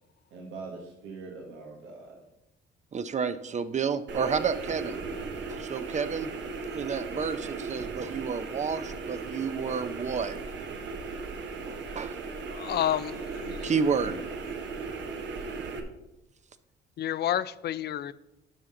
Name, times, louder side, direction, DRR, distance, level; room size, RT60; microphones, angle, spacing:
voice 1, 0.3-2.2 13.1-13.2, right 4 dB, 90° right, 1.3 m, -43 dB
voice 2, 2.9-5.0 5.5-6.3 6.7-10.4 11.7-12.2 13.6-14.2, right 6 dB, 35° right, 0.6 m, -30 dB
sound 1, 4.1-15.8, right 4 dB, 70° right, 1.2 m, -37 dB
voice 3, 12.5-13.7 17.0-18.1, left 11 dB, 55° left, 0.4 m, -30 dB
11.5 x 5.7 x 3.8 m
cardioid pair, 90°, 20 cm